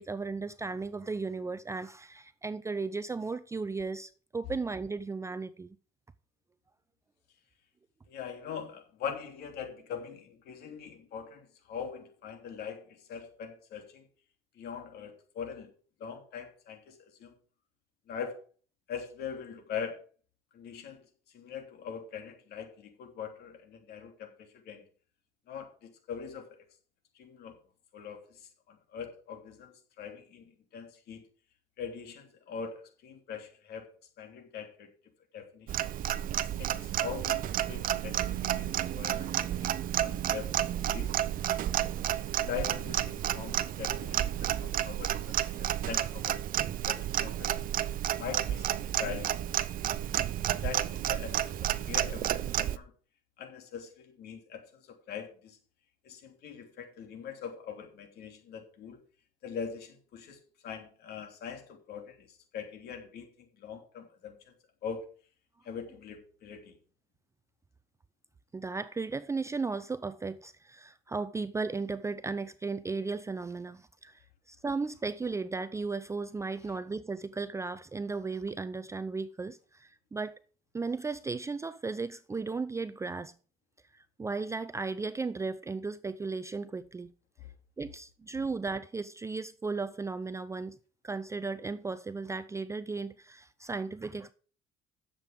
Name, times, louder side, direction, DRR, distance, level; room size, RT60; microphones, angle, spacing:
voice 1, 0.0-5.8 68.5-74.2 74.5-80.4 80.7-83.3 83.9-87.1 87.8-90.8 91.0-94.3, right 4 dB, 15° right, 0.5 m, -35 dB
voice 2, 8.1-14.1 14.6-15.7 16.0-17.3 18.1-18.4 18.9-20.0 20.5-21.0 21.3-24.8 25.5-26.6 27.2-27.5 27.9-29.7 30.0-31.2 31.8-33.9 34.2-34.9 35.3-35.8 36.4-41.1 42.2-45.1 45.4-46.4 46.8-47.6 48.2-49.4 50.6-51.5 51.9-52.9 53.4-55.6 56.0-59.0 59.4-64.5 64.8-65.1 65.6-66.8 87.4-87.5, left 7 dB, 70° left, 3.1 m, -42 dB
Clock, 35.7-52.8, right 11 dB, 55° right, 0.7 m, -31 dB
10.5 x 7.5 x 5.3 m
cardioid pair, 110°, 17 cm